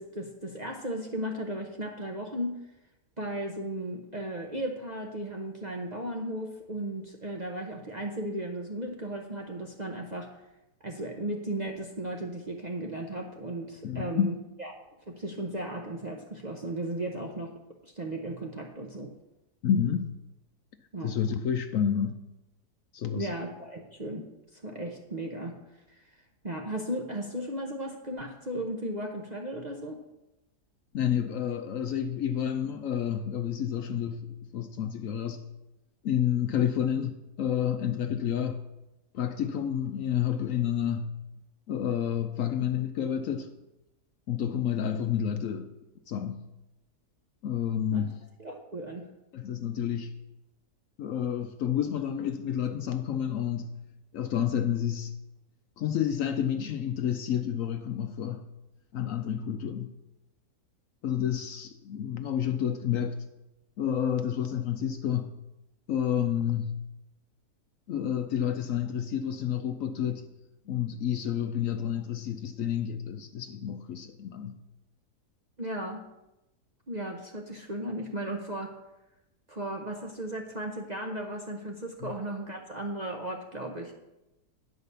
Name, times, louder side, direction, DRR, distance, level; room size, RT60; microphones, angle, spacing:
voice 1, 0.0-2.6 3.2-10.4 10.8-14.7 15.1-17.5 17.9-19.1 20.9-21.2 23.2-24.3 24.5-25.6 25.9-26.1 26.4-30.0 47.9-48.0 48.4-49.1 75.6-76.0 76.9-78.7 79.5-83.9, right 1 dB, 35° right, 0.7 m, -35 dB
voice 2, 13.8-14.3 19.6-20.1 21.0-22.2 22.9-23.3 30.9-35.5 36.0-38.7 39.1-41.2 41.7-43.5 44.3-45.7 46.1-46.5 47.4-48.2 49.3-50.1 51.0-53.7 54.1-55.1 55.8-58.5 58.9-59.9 61.0-63.2 63.8-65.4 65.9-66.8 67.9-70.3 70.7-74.6 82.0-82.1, left 9 dB, 65° left, 0.9 m, -30 dB
9.8 x 4.9 x 6.7 m
omnidirectional pair, 1.7 m